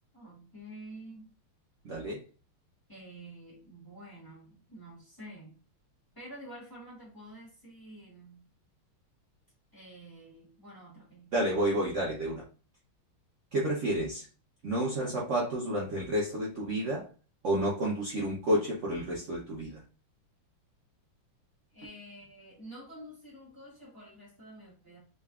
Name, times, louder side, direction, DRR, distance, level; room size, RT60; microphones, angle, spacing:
voice 1, 0.1-1.3 2.9-5.5 6.1-8.4 9.7-11.6 21.7-25.0, right 1 dB, 15° left, -6 dB, 1.1 m, -49 dB
voice 2, 1.8-2.2 11.3-12.4 13.5-14.3 14.6-17.1 17.4-19.8, right 1 dB, 80° right, -4 dB, 0.6 m, -30 dB
3.9 x 3.3 x 2.4 m, 0.36 s
omnidirectional pair, 2.4 m